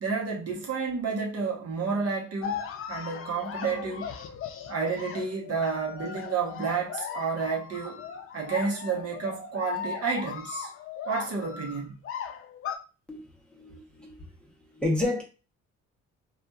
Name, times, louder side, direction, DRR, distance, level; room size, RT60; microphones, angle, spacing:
voice 1, 0.0-2.6 2.9-4.1 4.7-8.0 8.3-10.7 11.1-11.9, right 5 dB, 55° right, 0.9 m, -30 dB
sound 1, 2.4-12.8, left 7 dB, 45° left, 0.5 m, -38 dB
voice 2, 13.1-14.3 14.6-15.2, left 2 dB, 5° left, 0.8 m, -31 dB
2.7 x 2.4 x 2.3 m
cardioid pair, 90°, 30 cm